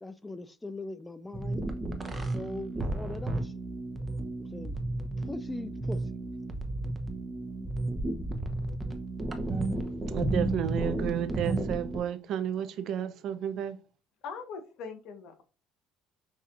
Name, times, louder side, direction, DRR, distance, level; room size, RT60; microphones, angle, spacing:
voice 1, 0.0-1.6 2.0-3.6 4.4-4.8 5.3-6.0, left 2 dB, 10° left, 0.5 m, -40 dB
sound 1, 1.3-12.0, right 2 dB, 20° right, 0.8 m, -33 dB
voice 2, 10.1-13.8, right 9 dB, 60° right, 0.5 m, -32 dB
voice 3, 14.2-15.4, left 5 dB, 65° left, 1.1 m, -41 dB
6.0 x 2.7 x 2.4 m
supercardioid pair, 85°, 0 cm